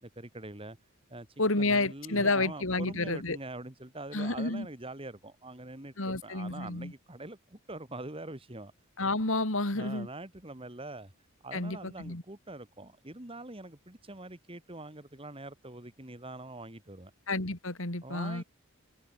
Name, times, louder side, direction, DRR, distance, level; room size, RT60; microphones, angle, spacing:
voice 1, 0.0-0.8 1.1-1.3 1.6-8.7 9.7-11.1 11.4-17.1 18.0-18.4, right 2 dB, 25° right, 2.2 m, -44 dB
voice 2, 1.4-3.4 4.1-4.7 6.0-6.9 9.0-10.1 11.5-12.2 17.3-18.4, left 2 dB, 60° left, 2.9 m, -30 dB
head